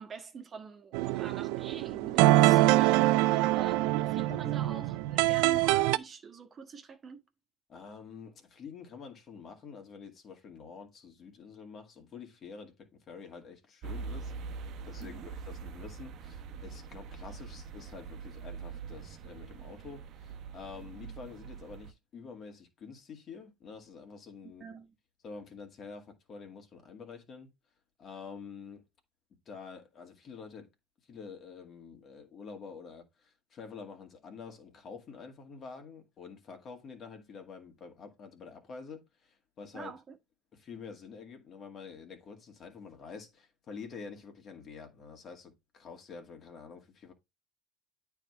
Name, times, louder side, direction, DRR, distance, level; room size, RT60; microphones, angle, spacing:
voice 1, 0.0-7.2 15.0-15.3 24.4-24.9 39.7-40.2, right 5 dB, 35° right, 1.5 m, -45 dB
sound 1, 0.9-6.0, right 16 dB, 70° right, 0.5 m, -25 dB
voice 2, 7.7-24.6 25.2-27.5 28.0-28.8 29.5-30.7 31.1-39.9 40.5-47.1, left 5 dB, 40° left, 2.1 m, -47 dB
sound 2, 13.8-21.9, right 5 dB, 55° right, 1.0 m, -43 dB
9.0 x 3.6 x 4.7 m
supercardioid pair, 90°, 0 cm